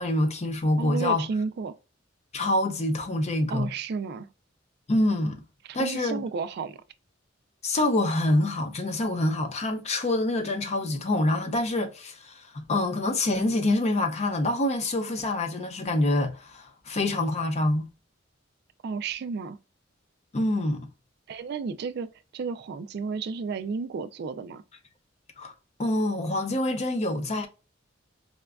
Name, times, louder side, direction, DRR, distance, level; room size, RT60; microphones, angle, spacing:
voice 1, 0.0-1.2 2.3-3.7 4.9-5.4 5.7-6.2 7.6-17.9 20.3-20.9 25.4-25.5 25.8-27.5, left 1 dB, 35° left, 0.5 m, -26 dB
voice 2, 0.8-1.7 3.5-4.3 5.7-6.8 18.8-19.6 21.3-24.6, right 5 dB, 60° right, 0.3 m, -32 dB
4.8 x 2.2 x 2.3 m
head